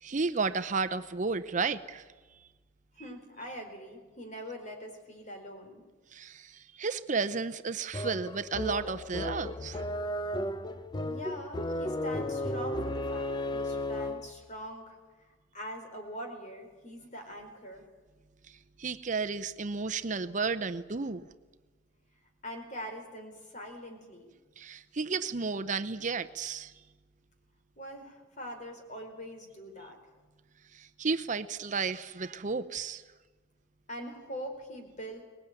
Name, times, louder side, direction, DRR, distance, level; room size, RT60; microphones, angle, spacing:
voice 1, 0.0-2.0 6.1-9.8 18.5-21.3 24.6-26.7 30.7-33.0, right 4 dB, 40° right, 11 dB, 0.7 m, -33 dB
voice 2, 3.0-5.8 11.0-15.0 15.3-17.8 22.4-24.3 27.8-30.0 33.9-35.2, equal, 40° left, 4 dB, 4.6 m, -43 dB
sound 1, 7.9-14.4, left 1 dB, 25° left, 0.7 m, -34 dB
23.5 x 20.0 x 9.1 m, 1.3 s
head